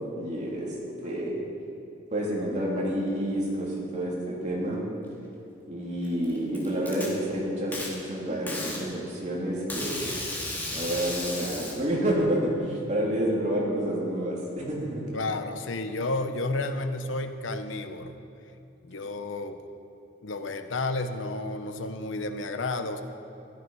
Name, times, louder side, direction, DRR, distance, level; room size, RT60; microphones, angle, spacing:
voice 1, 0.1-0.7 1.0-1.3 2.1-4.8 5.7-10.1 10.7-15.0, right 1 dB, 35° right, -4 dB, 3.0 m, -29 dB
Packing tape duct tape, 6.0-7.1 7.7-7.9 8.5-8.8 9.7-11.7, left 2 dB, 10° left, 2.3 m, -34 dB
voice 2, 15.1-18.1 18.8-19.6 20.2-23.0, left 2 dB, 80° left, 8 dB, 0.9 m, -31 dB
14.0 x 12.0 x 5.5 m, 2.8 s
head